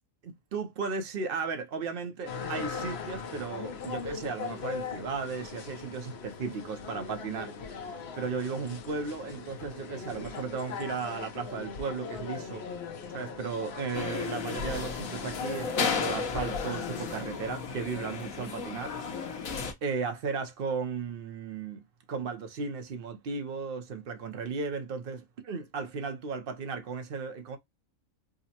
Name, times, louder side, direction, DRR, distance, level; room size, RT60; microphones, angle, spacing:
voice 1, 0.2-12.6 13.1-19.5 19.8-21.8 22.1-27.6, right 5 dB, 50° right, 0.8 m, -35 dB
sound 1, 2.3-17.2, left 5 dB, 55° left, 0.9 m, -40 dB
sound 2, 13.9-19.7, left 5 dB, 80° left, 1.3 m, -33 dB
5.0 x 2.1 x 2.8 m
omnidirectional pair, 1.4 m